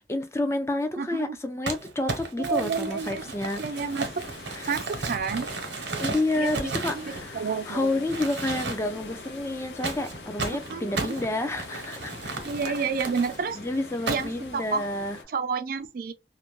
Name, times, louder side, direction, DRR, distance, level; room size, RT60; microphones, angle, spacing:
voice 1, 0.0-3.6 4.5-4.7 6.0-12.3 13.5-15.2, left 2 dB, 15° left, 0.4 m, -30 dB
voice 2, 1.0-1.4 2.4-3.2 3.6-4.1 4.7-5.5 6.4-8.0 10.7-10.9 12.5-13.6 14.1-14.9 15.3-16.1, right 5 dB, 55° right, 0.4 m, -30 dB
Crumpling crinkling, 1.7-7.7 8.1-9.0 9.8-13.4 14.1-14.5, right 3 dB, 85° right, 0.9 m, -34 dB
sound 1, 2.8-15.2, left 3 dB, 80° left, 0.7 m, -43 dB
2.5 x 2.1 x 3.0 m
head